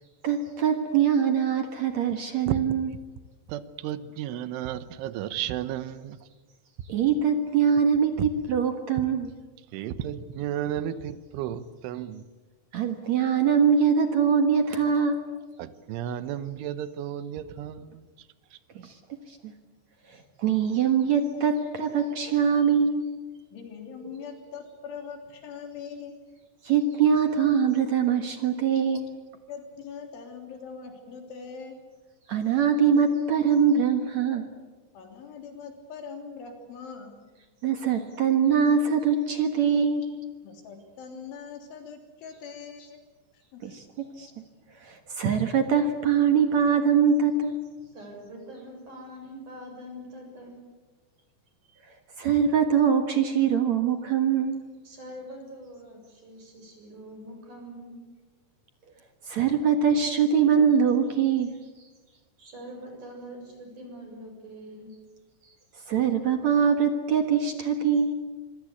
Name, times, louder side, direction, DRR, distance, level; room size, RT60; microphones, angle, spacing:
voice 1, 0.2-2.9 6.9-9.3 12.7-15.3 18.8-18.9 19.4-19.5 20.4-23.2 26.6-29.1 32.3-34.4 37.6-40.2 43.6-44.3 44.8-47.6 52.2-54.6 59.3-61.5 65.9-68.1, right 7 dB, 60° right, 6 dB, 1.9 m, -23 dB
voice 2, 3.5-6.2 8.2-8.3 9.7-12.2 15.6-18.1, right 10 dB, 85° right, 13 dB, 3.5 m, -33 dB
voice 3, 23.5-26.1 29.5-31.8 34.9-37.1 40.4-43.0 43.3-43.8, left 6 dB, 85° left, 4 dB, 5.7 m, -42 dB
voice 4, 47.8-50.6 54.8-58.0 62.4-64.9, equal, 40° right, 2 dB, 8.4 m, -44 dB
25.5 x 24.5 x 8.5 m, 1.3 s
omnidirectional pair, 5.3 m